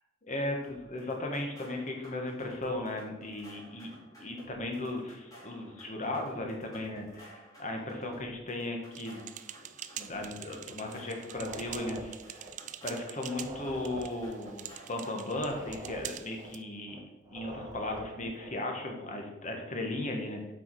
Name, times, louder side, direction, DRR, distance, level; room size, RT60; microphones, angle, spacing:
voice 1, 0.2-3.9 4.2-9.2 10.0-12.5 12.8-17.0 17.3-20.5, left 2 dB, 40° left, 2 dB, 1.3 m, -36 dB
sound 1, 0.6-15.5, equal, 20° left, 2.8 m, -54 dB
sound 2, 8.9-16.6, right 11 dB, 40° right, 0.3 m, -45 dB
sound 3, 11.2-13.0 13.2-17.0 17.2-18.6, right 1 dB, 20° right, 1.2 m, -46 dB
8.3 x 4.7 x 4.6 m, 1.0 s
head